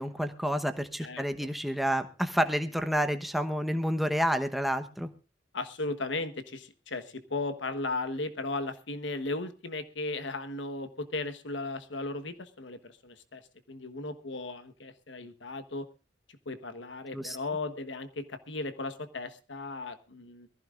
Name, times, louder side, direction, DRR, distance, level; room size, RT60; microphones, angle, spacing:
voice 1, 0.0-5.1 17.1-17.4, equal, ahead, 8 dB, 1.0 m, -29 dB
voice 2, 5.5-13.4 13.7-15.9 16.4-20.5, left 2 dB, 75° left, 10 dB, 1.3 m, -36 dB
22.5 x 15.0 x 2.5 m, 0.31 s
head